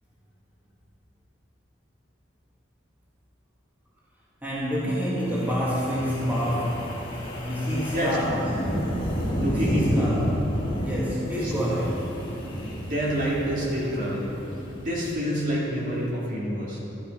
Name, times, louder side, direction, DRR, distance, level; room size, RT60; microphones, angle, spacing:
voice 1, 4.4-8.8 9.5-12.1, equal, 10° right, -7 dB, 2.0 m, -28 dB
Wind, 5.3-15.5, equal, 25° left, 2.1 m, -31 dB
voice 2, 9.4-10.1 10.8-10.9 11.3-11.5 12.7-14.4 14.8-16.8, equal, 40° right, -5 dB, 2.4 m, -27 dB
12.0 x 12.0 x 5.3 m, 3.0 s
head